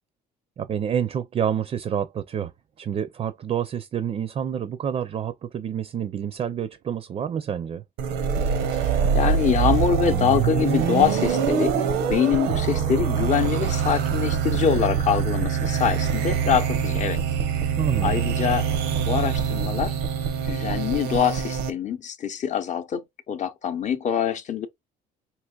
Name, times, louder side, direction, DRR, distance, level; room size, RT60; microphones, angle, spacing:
voice 1, 0.6-2.5 2.8-7.8 17.8-18.3, right 8 dB, 40° right, 0.4 m, -28 dB
sound 1, 8.0-21.7, right 7 dB, 90° right, 0.8 m, -24 dB
voice 2, 8.8-11.7 12.1-17.2 18.0-18.7 19.1-19.9 20.4-24.7, left 8 dB, 45° left, 0.6 m, -24 dB
4.5 x 2.8 x 2.3 m
cardioid pair, 110°, 17 cm